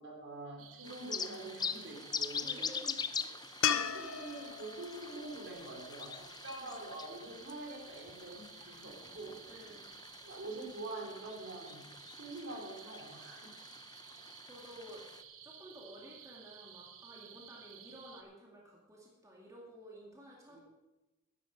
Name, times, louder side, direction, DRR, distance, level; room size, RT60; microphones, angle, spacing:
voice 1, 0.0-2.5 3.7-9.7 10.2-13.5 20.5-20.6, right 2 dB, 60° right, -1 dB, 3.8 m, -46 dB
sound 1, 0.6-18.2, right 9 dB, 85° right, 1.1 m, -54 dB
sound 2, 0.8-15.2, left 6 dB, 20° left, 0.5 m, -44 dB
voice 2, 2.4-3.6 6.6-7.0 9.5-9.9 14.4-15.1 15.4-20.6, equal, 15° right, -3 dB, 2.1 m, -53 dB
sound 3, 3.6-6.9 10.1-10.2, left 9 dB, 75° left, 0.6 m, -37 dB
12.5 x 10.5 x 5.1 m, 1.1 s
head